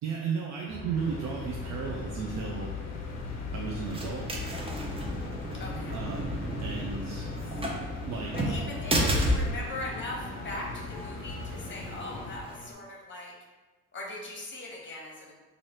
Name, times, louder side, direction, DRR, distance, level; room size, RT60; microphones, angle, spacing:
voice 1, 0.0-2.8 3.5-4.3 5.9-7.3 8.1-8.4, right 5 dB, 65° right, -1 dB, 0.5 m, -34 dB
sound 1, 0.7-12.7, left 1 dB, 25° left, 1.2 m, -43 dB
sound 2, 0.9-12.4, left 6 dB, 60° left, 0.5 m, -41 dB
sound 3, 2.9-12.6, equal, 20° right, 0.7 m, -33 dB
voice 2, 5.5-6.0 8.3-13.3 13.9-15.3, left 2 dB, 40° left, -2 dB, 1.0 m, -40 dB
3.1 x 2.6 x 4.2 m, 1.2 s
cardioid pair, 90°, 30 cm